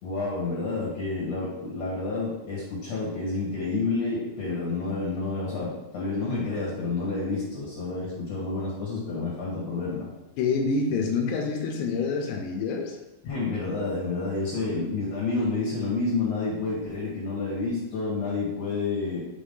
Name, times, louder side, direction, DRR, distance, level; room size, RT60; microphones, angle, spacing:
voice 1, 0.0-10.1 13.2-19.2, left 3 dB, 65° left, 1.7 m, -29 dB
voice 2, 10.4-13.0, left 4 dB, 80° left, 2.7 m, -27 dB
7.1 x 4.5 x 3.8 m
omnidirectional pair, 5.3 m